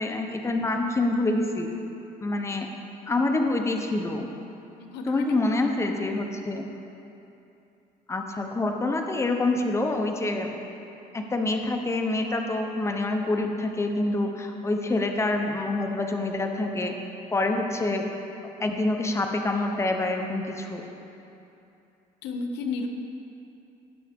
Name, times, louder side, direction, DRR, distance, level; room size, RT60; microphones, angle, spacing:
voice 1, 0.0-1.7 2.2-2.7 3.1-4.3 5.1-6.6 8.1-10.5 11.1-17.0 17.3-18.0 18.6-20.8, left 2 dB, 15° left, 3 dB, 0.9 m, -26 dB
voice 2, 4.8-5.4 22.2-22.9, left 4 dB, 90° left, 5 dB, 0.9 m, -32 dB
18.0 x 6.2 x 3.6 m, 2.8 s
cardioid pair, 110°, 17 cm